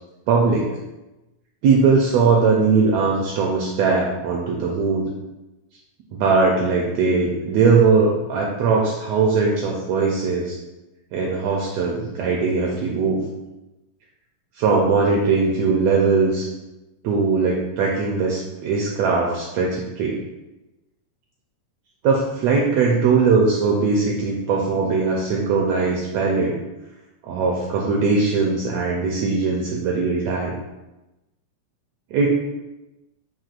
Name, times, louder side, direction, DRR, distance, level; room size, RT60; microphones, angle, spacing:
voice 1, 0.3-0.7 1.6-5.1 6.1-10.6 11.1-13.2 14.6-16.5 17.0-20.2 22.0-26.6 27.2-30.5 32.1-32.3, right 4 dB, 80° right, -1 dB, 1.5 m, -20 dB
7.4 x 2.8 x 2.4 m, 1.0 s
omnidirectional pair, 3.5 m